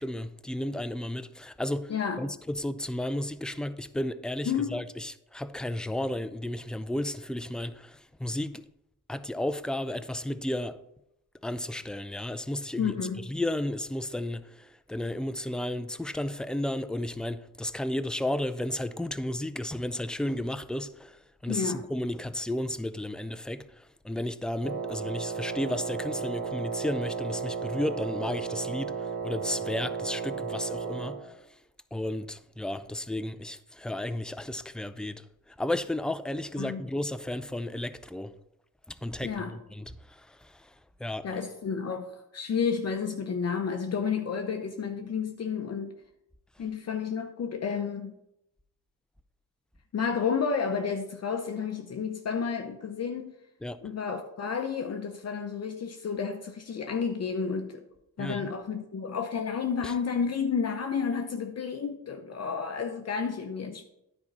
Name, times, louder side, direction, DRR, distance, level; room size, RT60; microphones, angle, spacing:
voice 1, 0.0-1.9 2.2-8.6 9.1-10.8 11.4-13.0 13.3-23.7 24.0-31.3 31.9-38.3 38.9-40.6 41.0-41.3 53.6-53.8 58.2-58.5 59.8-59.9, left 1 dB, ahead, 0.3 m, -33 dB
voice 2, 1.9-2.3 4.5-4.8 12.8-13.3 21.5-21.9 36.6-36.8 39.2-39.6 41.2-45.9 46.6-48.2 49.9-53.3 53.8-57.8 58.2-63.9, left 6 dB, 45° left, 0.7 m, -31 dB
Wind instrument woodwind instrument, 24.6-31.3, right 6 dB, 90° right, 1.5 m, -34 dB
9.7 x 4.3 x 5.3 m
cardioid pair, 75°, 35 cm